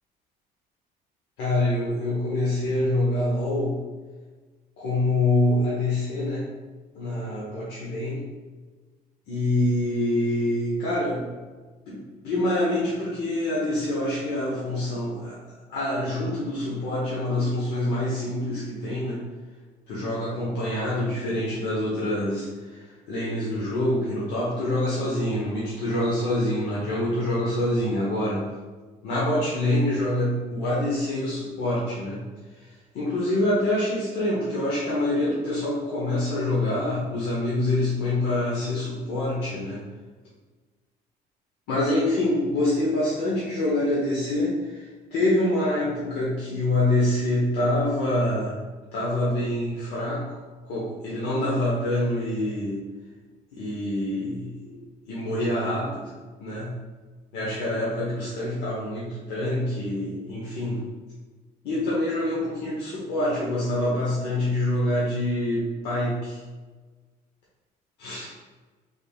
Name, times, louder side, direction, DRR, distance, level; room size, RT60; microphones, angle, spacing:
voice 1, 1.4-3.8 4.8-6.4 7.0-8.2 9.3-11.3 11.9-15.4 15.7-19.2 19.9-28.5 29.0-32.2 32.6-39.8 41.7-48.6 48.9-50.3 50.6-52.8 53.5-54.8 55.1-56.1 56.4-56.8 57.3-60.8 61.6-66.4 68.0-68.3, left 1 dB, 85° left, -7 dB, 0.8 m, -26 dB
3.5 x 3.4 x 2.3 m, 1.4 s
cardioid pair, 110°, 17 cm